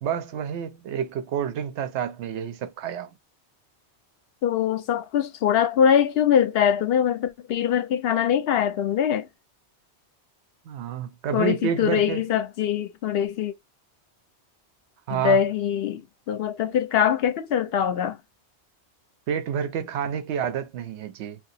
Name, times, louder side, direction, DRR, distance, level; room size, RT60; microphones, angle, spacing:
voice 1, 0.0-3.1 10.7-12.2 15.1-15.4 19.3-21.4, right 8 dB, 85° right, 0.9 m, -29 dB
voice 2, 4.4-9.3 11.3-13.5 15.1-18.2, left 8 dB, 65° left, 0.8 m, -23 dB
2.6 x 2.3 x 4.0 m
omnidirectional pair, 1.2 m